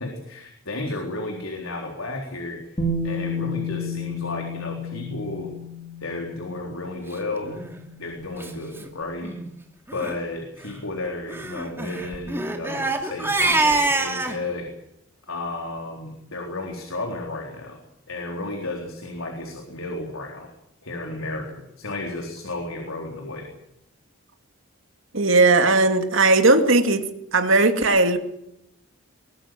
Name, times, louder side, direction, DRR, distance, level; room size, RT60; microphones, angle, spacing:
voice 1, 0.0-2.7 3.0-5.5 6.0-7.6 8.0-9.3 9.9-14.7 15.3-17.8 18.1-20.5 20.8-23.5, left 2 dB, 75° left, 4.0 m, -33 dB
Bass guitar, 2.8-8.8, left 2 dB, 25° left, 3.6 m, -32 dB
Crying sobbing, 7.5-7.7 8.4-8.5 8.8-8.9 9.2-9.5 9.9-10.1 11.3-14.4, right 2 dB, 10° right, 2.6 m, -25 dB
voice 2, 25.1-27.1 27.3-28.2, right 2 dB, 65° right, 2.5 m, -17 dB
22.0 x 21.0 x 7.7 m
head